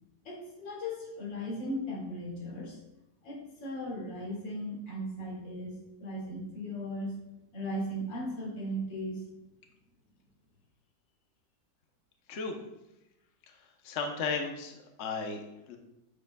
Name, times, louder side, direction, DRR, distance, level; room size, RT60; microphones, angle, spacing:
voice 1, 0.2-2.8 3.2-7.1 7.5-9.2, equal, 80° left, -4 dB, 2.9 m, -37 dB
voice 2, 13.5-15.8, left 4 dB, 50° left, 3 dB, 0.9 m, -35 dB
8.1 x 7.8 x 2.3 m, 0.91 s
omnidirectional pair, 2.0 m